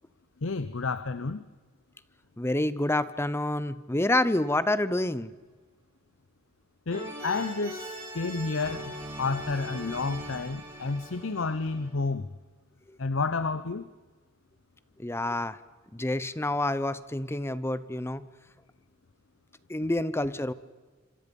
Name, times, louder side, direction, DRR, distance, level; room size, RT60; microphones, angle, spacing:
voice 1, 0.4-1.4 6.9-8.9 9.2-12.3 13.0-13.9, left 4 dB, 70° left, 0.8 m, -30 dB
voice 2, 2.4-5.3 15.0-15.6 15.9-18.3 19.7-20.5, left 1 dB, 10° left, 0.8 m, -28 dB
sound 1, 6.9-11.9, right 1 dB, 15° right, 6.9 m, -40 dB
26.5 x 26.0 x 5.4 m
head